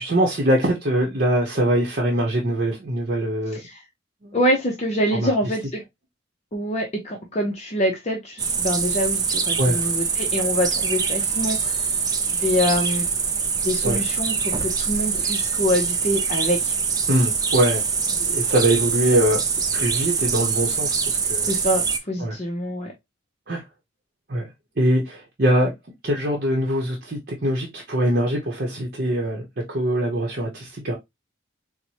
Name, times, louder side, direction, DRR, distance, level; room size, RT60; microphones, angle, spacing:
voice 1, 0.0-3.6 4.2-4.4 5.1-5.3 9.6-9.8 13.8-14.0 17.1-19.4 19.7-21.5 22.2-22.3 23.5-23.6 24.3-24.5 24.8-25.7 26.0-30.9, right 1 dB, 50° right, 0.8 m, -23 dB
voice 2, 4.3-5.8 6.5-11.9 12.3-13.1 13.6-16.7 21.4-22.9, equal, 35° left, 0.6 m, -25 dB
sound 1, 8.4-22.0, right 5 dB, 20° right, 0.3 m, -24 dB
4.5 x 2.1 x 2.7 m
head